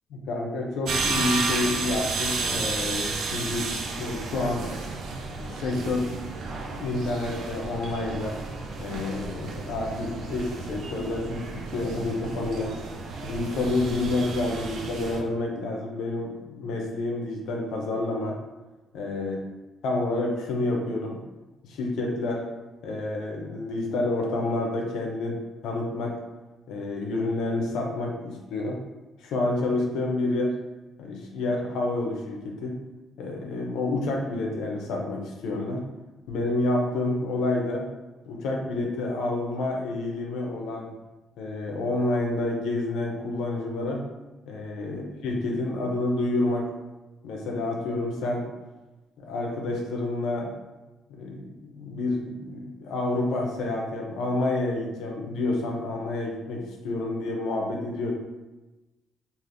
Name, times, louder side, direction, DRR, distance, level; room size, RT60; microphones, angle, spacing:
voice 1, 0.1-4.7 5.3-6.2 6.5-8.4 8.8-12.8 13.2-18.4 18.9-19.4 19.8-21.2 21.6-22.5 22.8-26.2 26.7-28.8 29.2-30.6 31.0-32.8 33.2-35.8 36.3-37.9 38.3-40.9 41.4-44.0 44.5-46.7 47.2-48.5 49.2-50.5 51.1-58.1, left 2 dB, 85° left, 0 dB, 0.6 m, -29 dB
sound 1, 0.8-15.2, right 3 dB, 75° right, 0.4 m, -32 dB
3.3 x 2.5 x 2.6 m, 1.1 s
cardioid pair, 90°, 0 cm